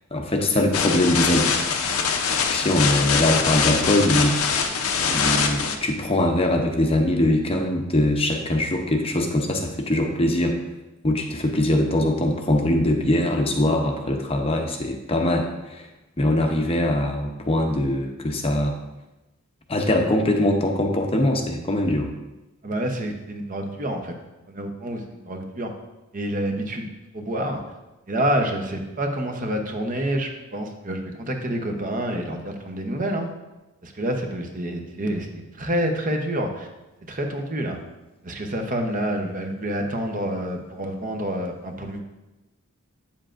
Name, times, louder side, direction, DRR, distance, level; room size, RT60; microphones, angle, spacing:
voice 1, 0.1-1.5 2.5-4.7 5.0-10.5 11.0-15.9 16.2-18.8 19.7-22.1, left 1 dB, 25° left, 3 dB, 0.7 m, -22 dB
sound 1, 0.7-5.8, left 6 dB, 75° left, 0.7 m, -23 dB
voice 2, 22.6-24.1 24.5-25.7 26.1-27.6 28.1-33.3 33.8-36.7 37.0-37.8 38.2-42.0, right 1 dB, 35° right, 4 dB, 0.8 m, -28 dB
8.7 x 7.2 x 2.5 m, 1.0 s
head